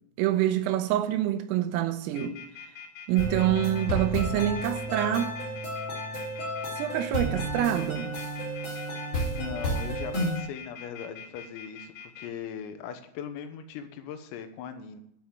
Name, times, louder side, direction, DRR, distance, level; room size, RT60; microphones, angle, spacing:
voice 1, 0.2-2.4 3.1-5.3 6.8-8.1, right 12 dB, 85° right, 3.5 m, -26 dB
sound 1, 2.1-12.3, left 8 dB, 65° left, 3.6 m, -44 dB
sound 2, 3.2-10.4, right 1 dB, 30° left, 2.3 m, -32 dB
voice 2, 9.2-15.0, left 7 dB, 85° left, 3.8 m, -39 dB
11.0 x 6.1 x 8.8 m
omnidirectional pair, 5.9 m